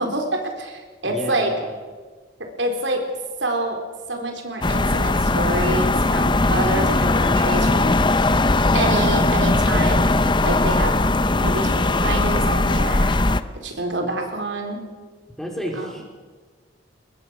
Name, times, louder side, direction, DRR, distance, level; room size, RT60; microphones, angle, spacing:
voice 1, 0.0-1.5 2.6-3.0 3.4-3.8 4.1-8.0 8.7-10.1 10.4-10.9 11.4-13.2 13.6-14.8 15.7-15.9, right 2 dB, 75° right, 3 dB, 4.2 m, -26 dB
voice 2, 1.0-1.7 15.4-16.0, equal, ahead, 0 dB, 4.3 m, -31 dB
sound 1, 4.6-13.4, left 2 dB, 25° left, 0.8 m, -19 dB
23.5 x 21.0 x 6.4 m, 1.5 s
head